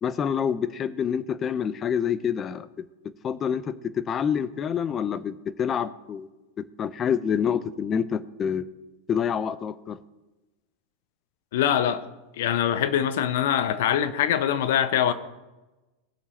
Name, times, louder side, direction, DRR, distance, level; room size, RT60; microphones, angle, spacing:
voice 1, 0.0-2.7 3.2-6.3 6.6-8.6 9.1-10.0, left 7 dB, 30° left, 14 dB, 0.7 m, -27 dB
voice 2, 11.5-12.0 12.4-15.1, left 10 dB, 60° left, 12 dB, 0.9 m, -23 dB
19.5 x 7.0 x 4.4 m, 1.1 s
figure-of-eight pair, 85°, 0 cm